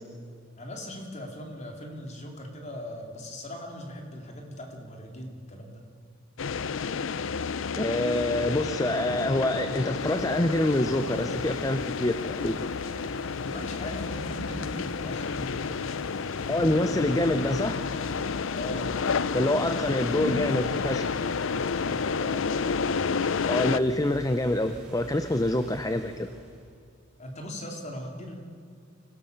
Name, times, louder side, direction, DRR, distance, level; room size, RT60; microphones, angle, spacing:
voice 1, 0.6-5.8 13.4-15.9 18.5-18.9 21.8-22.7 27.2-28.4, left 1 dB, 35° left, 2 dB, 3.0 m, -39 dB
sound 1, 6.4-23.8, left 5 dB, 65° left, 0.5 m, -30 dB
voice 2, 7.8-12.6 16.5-17.8 19.3-21.2 23.5-26.3, left 1 dB, 15° left, 9 dB, 0.6 m, -26 dB
sound 2, 9.9-26.7, equal, 5° right, 4.5 m, -47 dB
25.0 x 17.0 x 6.7 m, 2.5 s
head